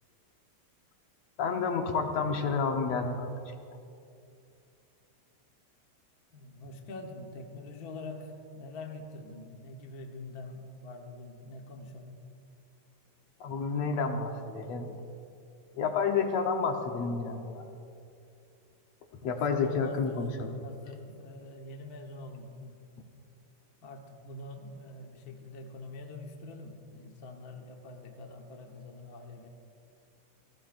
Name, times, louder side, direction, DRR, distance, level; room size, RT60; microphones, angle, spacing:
voice 1, 1.4-3.5 13.4-14.9 15.7-17.7 19.1-20.6, left 5 dB, 65° left, 3 dB, 2.1 m, -30 dB
voice 2, 6.3-12.2 19.2-20.2 20.6-22.8 23.8-29.5, left 2 dB, 50° left, 2 dB, 1.2 m, -45 dB
29.0 x 18.0 x 2.6 m, 2.6 s
omnidirectional pair, 3.4 m